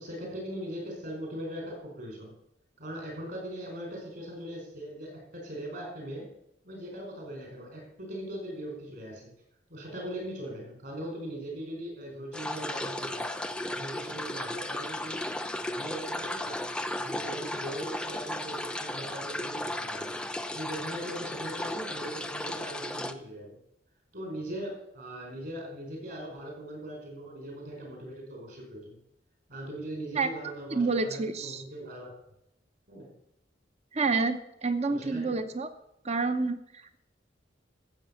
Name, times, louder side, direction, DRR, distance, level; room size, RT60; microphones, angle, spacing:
voice 1, 0.0-2.3 2.8-6.3 6.6-9.3 9.7-13.3 13.7-15.3 15.6-16.6 16.9-20.2 20.5-23.6 24.1-29.0 29.5-32.1 32.9-33.1 34.9-35.4, right 1 dB, 55° right, 0 dB, 4.8 m, -40 dB
sound 1, 12.3-23.1, left 1 dB, 5° left, 0.5 m, -35 dB
voice 2, 30.7-31.6 33.9-35.7 36.0-37.0, right 4 dB, 35° right, 10 dB, 0.8 m, -29 dB
13.5 x 7.7 x 7.0 m, 0.79 s
head